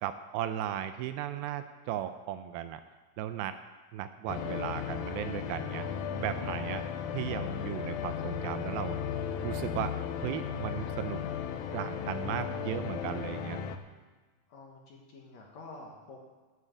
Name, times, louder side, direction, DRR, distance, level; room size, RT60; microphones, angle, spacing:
voice 1, 0.0-2.8 3.2-3.6 3.9-5.9 6.2-6.8 7.1-9.0 9.4-11.2 11.7-13.6, right 11 dB, 80° right, 10 dB, 2.3 m, -36 dB
voice 2, 0.5-1.1 6.7-6.8 14.5-16.2, left 3 dB, 60° left, -1 dB, 2.2 m, -50 dB
sound 1, 4.3-13.8, left 7 dB, 75° left, 2.4 m, -35 dB
10.0 x 8.2 x 7.8 m, 1.4 s
omnidirectional pair, 4.5 m